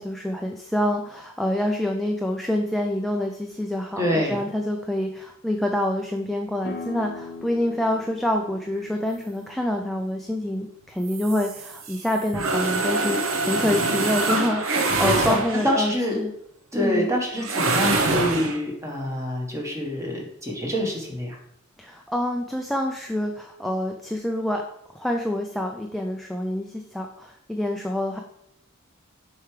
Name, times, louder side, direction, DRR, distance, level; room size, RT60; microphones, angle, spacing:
voice 1, 0.0-16.3 16.7-17.1 21.8-24.6 24.9-28.2, left 1 dB, ahead, 2 dB, 0.3 m, -27 dB
voice 2, 4.0-4.4 15.0-15.4 15.6-16.2 16.7-21.4, left 1 dB, 15° right, -1 dB, 1.3 m, -26 dB
sound 1, 6.6-12.0, left 4 dB, 50° left, 0.7 m, -42 dB
sound 2, 11.1-15.9 17.4-18.6, right 3 dB, 80° right, 0.8 m, -25 dB
6.7 x 4.5 x 3.3 m, 0.78 s
head